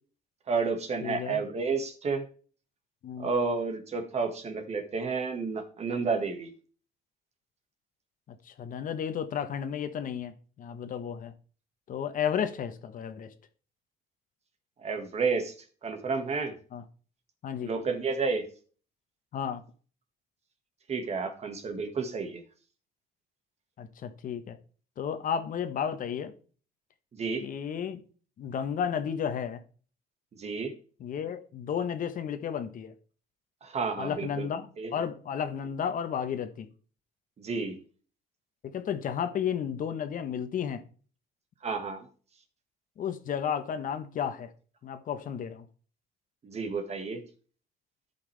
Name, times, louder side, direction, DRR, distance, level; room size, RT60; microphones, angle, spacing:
voice 1, 0.5-2.2 3.2-6.5 14.8-15.6 15.8-16.5 17.6-18.5 20.9-22.4 27.1-27.5 30.4-30.7 33.6-34.5 34.8-34.9 37.4-37.8 41.6-42.1 46.4-47.2, right 4 dB, 40° right, 1.8 m, -31 dB
voice 2, 1.0-1.4 3.0-3.3 8.3-11.3 11.9-13.3 16.7-16.8 17.4-17.7 19.3-19.6 23.8-24.6 25.0-26.3 27.4-28.0 28.4-29.6 31.0-32.9 34.0-34.7 34.9-36.7 38.6-40.8 43.0-44.5 44.8-45.6, left 8 dB, 55° left, 1.2 m, -33 dB
13.5 x 5.7 x 3.4 m
cardioid pair, 110°, 17 cm